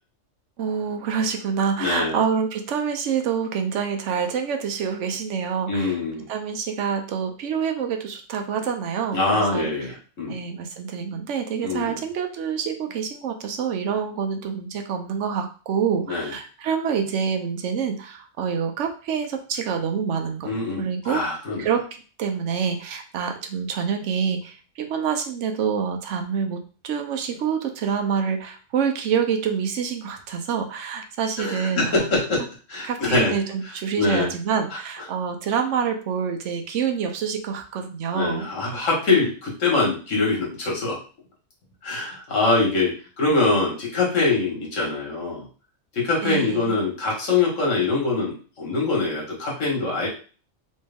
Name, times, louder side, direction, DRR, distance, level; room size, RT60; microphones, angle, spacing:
voice 1, 0.6-6.0 6.3-9.7 10.3-21.2 21.6-21.9 22.2-32.1 32.8-38.5 46.2-46.7, right 7 dB, 75° right, 5 dB, 1.0 m, -27 dB
voice 2, 1.8-2.2 5.7-6.3 9.1-10.4 11.6-12.0 16.1-16.3 20.4-21.6 31.4-32.4 32.7-33.3 34.0-34.3 38.1-41.0 41.8-45.5 45.9-50.1, left 3 dB, 80° left, -2 dB, 1.8 m, -23 dB
3.2 x 3.1 x 3.4 m, 0.37 s
omnidirectional pair, 1.3 m